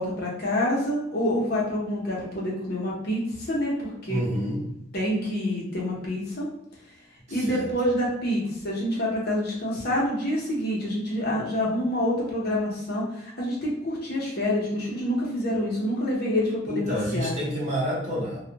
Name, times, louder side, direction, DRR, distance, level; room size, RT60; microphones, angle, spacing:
voice 1, 0.0-4.2 4.9-6.5 7.3-17.3, left 1 dB, 50° left, -4 dB, 0.8 m, -27 dB
voice 2, 4.1-4.6 7.3-7.6 16.7-18.4, equal, 35° right, -6 dB, 0.9 m, -28 dB
2.3 x 2.1 x 2.8 m, 0.82 s
head